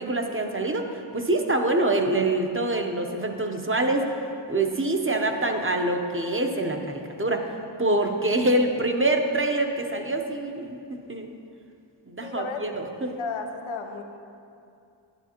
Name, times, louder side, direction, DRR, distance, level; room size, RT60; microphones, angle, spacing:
voice 1, 0.0-4.1 4.5-7.5 7.8-11.3 12.1-13.1, right 2 dB, 25° right, 4 dB, 0.8 m, -25 dB
voice 2, 12.2-12.6 13.2-14.0, left 4 dB, 90° left, 4 dB, 0.8 m, -33 dB
11.0 x 9.1 x 2.9 m, 2.5 s
wide cardioid pair, 60°, 46 cm